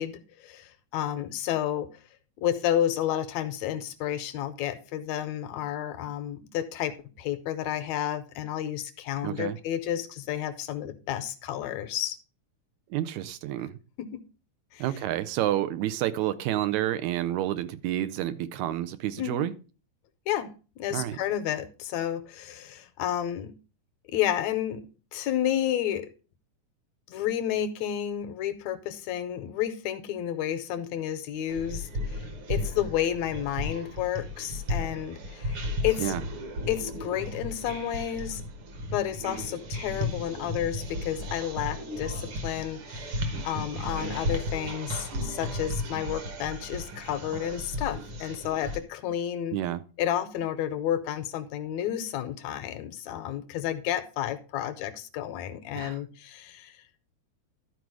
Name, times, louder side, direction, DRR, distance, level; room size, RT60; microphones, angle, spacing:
voice 1, 0.0-1.9 2.4-12.2 14.0-14.2 14.7-14.8 19.2-19.5 20.3-23.5 24.1-24.8 25.1-26.1 27.1-36.2 36.7-38.4 38.9-43.1 43.4-49.6 50.0-56.8, left 11 dB, 80° left, 12 dB, 1.8 m, -31 dB
voice 2, 9.2-9.6 12.9-13.8 14.8-19.5 20.9-21.2 36.0-36.2 49.5-49.8 55.7-56.0, right 13 dB, 80° right, 13 dB, 1.9 m, -29 dB
sound 1, 31.5-48.8, left 1 dB, 55° right, 1.8 m, -34 dB
12.0 x 4.8 x 4.7 m, 0.34 s
omnidirectional pair, 3.4 m